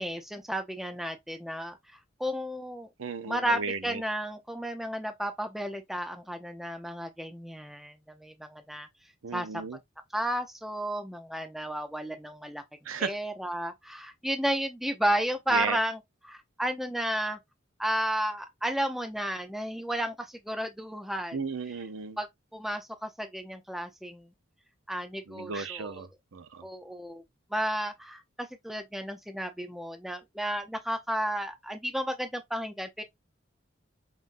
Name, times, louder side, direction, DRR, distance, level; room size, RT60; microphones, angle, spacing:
voice 1, 0.0-1.8 2.2-2.9 3.3-8.9 9.3-9.6 10.1-12.6 13.0-17.4 17.8-21.4 22.2-22.3 22.5-24.3 24.9-26.1 26.6-27.2 27.5-33.0, equal, ahead, 0.5 m, -33 dB
voice 2, 3.0-4.0 9.2-9.8 12.8-13.1 15.5-15.8 21.3-22.2 25.3-26.6, right 5 dB, 85° right, 0.7 m, -35 dB
5.6 x 2.6 x 2.5 m
head